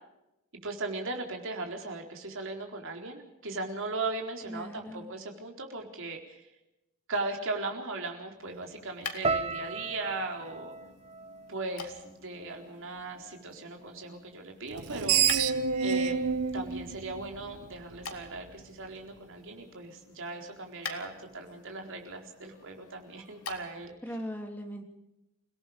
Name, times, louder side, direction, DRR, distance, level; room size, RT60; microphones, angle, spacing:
voice 1, 0.6-6.4 7.1-10.7 11.5-15.2 15.8-16.3 16.5-24.2, right 3 dB, 60° right, 3 dB, 4.2 m, -38 dB
voice 2, 4.5-5.1 24.0-24.8, equal, 10° left, 3 dB, 3.1 m, -39 dB
sound 1, 8.3-24.0, left 5 dB, 80° left, 2.9 m, -47 dB
sound 2, 9.2-13.5 13.7-14.5 15.1-15.3, right 4 dB, 30° right, 1.2 m, -37 dB
Screech, 14.7-18.0, right 7 dB, 85° right, 1.1 m, -28 dB
28.5 x 17.5 x 5.2 m, 0.90 s
head